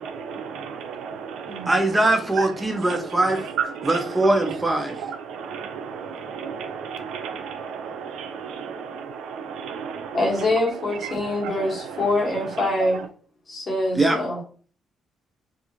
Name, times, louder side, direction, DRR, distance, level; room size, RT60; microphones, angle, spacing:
voice 1, 0.0-1.7 2.7-3.2 3.6-4.2 4.5-4.6 4.9-10.2 11.4-11.5, right 6 dB, 85° right, 7 dB, 0.4 m, -33 dB
voice 2, 1.7-3.4 3.8-4.9 14.0-14.2, right 2 dB, 15° right, 4 dB, 0.5 m, -21 dB
voice 3, 10.1-13.0 13.5-14.4, left 2 dB, 35° left, -2 dB, 1.2 m, -24 dB
2.5 x 2.3 x 2.9 m, 0.41 s
cardioid pair, 95°, 0 cm